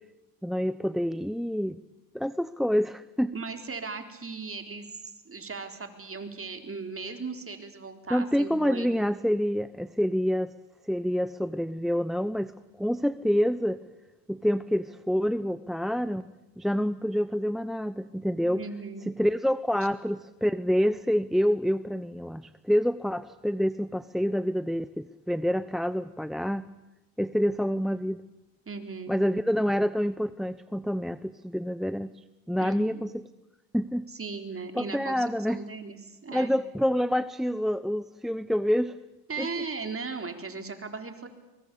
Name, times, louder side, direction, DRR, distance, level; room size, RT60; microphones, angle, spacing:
voice 1, 0.4-1.8 2.1-3.3 8.1-10.5 10.8-12.5 12.8-13.8 14.3-16.3 16.6-18.6 19.2-26.7 27.2-28.2 29.1-33.2 33.7-34.1 34.7-35.6 36.3-39.0 39.4-39.6, equal, ahead, 15 dB, 0.8 m, -27 dB
voice 2, 3.3-4.9 5.3-9.0 18.4-19.1 28.7-29.2 32.6-33.1 34.1-36.5 39.3-41.3, right 4 dB, 30° right, 6 dB, 4.0 m, -37 dB
23.5 x 22.0 x 8.5 m, 1.0 s
supercardioid pair, 65°, 41 cm